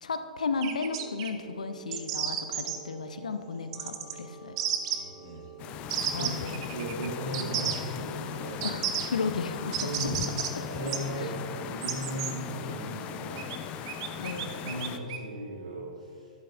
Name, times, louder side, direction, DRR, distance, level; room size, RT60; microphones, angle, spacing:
voice 1, 0.0-4.6 6.1-6.7 8.6-9.8 11.2-11.3 14.2-14.5, left 4 dB, 65° left, 9 dB, 0.7 m, -34 dB
sound 1, 0.6-1.3 1.9-2.8 3.7-4.1 4.6-5.0 5.9-7.1 7.3-7.8 8.6-9.1 9.7-10.5 10.9-11.0 11.8-12.3 13.4-13.6 13.9-15.2, right 10 dB, 40° right, 0.8 m, -32 dB
sound 2, 0.9-15.9, right 6 dB, 15° right, 1.6 m, -50 dB
voice 2, 4.9-5.4 6.0-6.3 6.7-8.6 9.8-10.2 10.7-13.4 14.0-14.3 14.6-16.3, right 1 dB, 60° right, -5 dB, 1.6 m, -37 dB
sound 3, 5.6-15.0, left 9 dB, 25° left, 0.4 m, -38 dB
11.5 x 11.0 x 2.5 m, 2.3 s
figure-of-eight pair, 110°, 4 cm